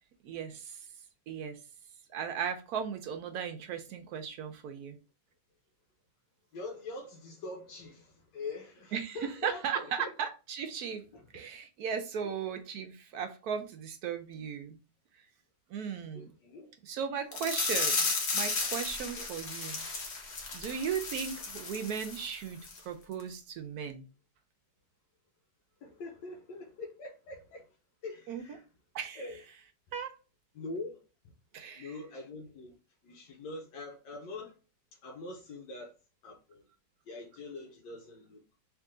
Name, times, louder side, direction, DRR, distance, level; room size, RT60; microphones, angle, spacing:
voice 1, 0.2-0.8 1.3-1.6 2.1-5.0 8.9-11.0 11.3-14.8 15.7-16.3 16.8-19.8 20.5-24.1 28.3-28.4 28.9-29.2 29.9-30.2 31.5-31.9, right 7 dB, 70° right, 0.9 m, -37 dB
voice 2, 6.5-10.1 11.1-11.3 12.2-12.3 16.1-16.7 19.2-19.3 25.8-27.7 28.0-28.6 29.2-29.4 30.5-31.0 31.7-32.8 33.0-34.5 35.0-35.9 36.2-36.6 37.0-38.4, left 2 dB, 90° left, 1.5 m, -43 dB
sound 1, 17.3-22.3 22.6-22.8 23.2-23.3, left 3 dB, 45° left, 1.0 m, -34 dB
3.6 x 3.0 x 3.6 m
omnidirectional pair, 1.9 m